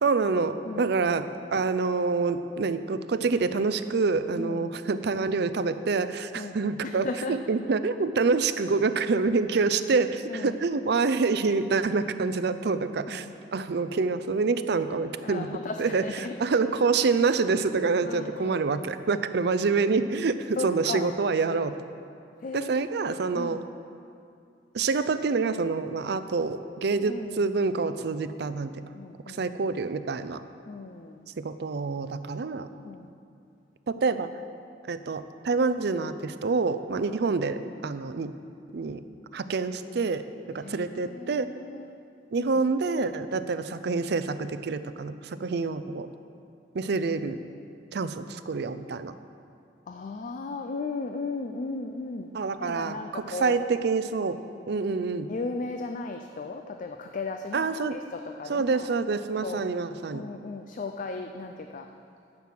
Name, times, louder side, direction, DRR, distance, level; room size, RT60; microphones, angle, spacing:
voice 1, 0.0-15.5 15.8-16.0 16.4-21.7 22.5-23.6 24.7-28.7 29.3-30.4 31.4-32.7 33.9-34.3 34.9-38.3 38.7-39.0 39.3-41.5 42.3-46.1 46.7-47.4 47.9-49.1 52.3-54.4 54.7-55.3 57.5-58.0 58.5-60.2, right 4 dB, 65° right, 11 dB, 0.5 m, -27 dB
voice 2, 0.6-1.2 4.4-4.7 6.3-7.4 10.3-10.5 13.1-13.3 14.9-16.3 18.0-18.6 20.6-21.1 22.4-22.7 23.1-23.6 27.1-27.5 28.9-29.5 30.7-31.2 32.8-33.1 40.6-41.9 49.9-52.3 52.6-53.6 55.3-58.9 59.4-59.7 60.1-61.9, left 3 dB, 45° left, 5 dB, 0.4 m, -36 dB
10.5 x 6.1 x 7.5 m, 2.5 s
head